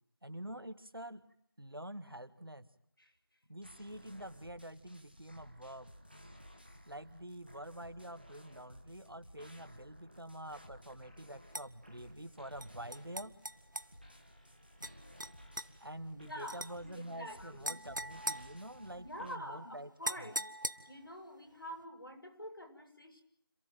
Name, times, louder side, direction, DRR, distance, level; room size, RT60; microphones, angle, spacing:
voice 1, 0.2-1.2 1.6-2.7 3.5-5.9 6.9-13.4 15.8-19.9 20.2-20.3, right 1 dB, 70° right, 11 dB, 2.0 m, -47 dB
sound 1, 3.6-19.4, equal, 25° right, 1.4 m, -57 dB
sound 2, 11.5-11.7 12.6-13.9 14.8-14.9 15.2-15.7 16.5-16.7 17.6-19.1 20.0-21.1, right 1 dB, 55° right, 1.1 m, -41 dB
voice 2, 16.1-16.6 16.9-17.7 18.9-20.5 20.9-23.2, equal, 70° left, 5 dB, 6.6 m, -47 dB
27.0 x 15.5 x 9.2 m, 0.68 s
figure-of-eight pair, 175°, 13 cm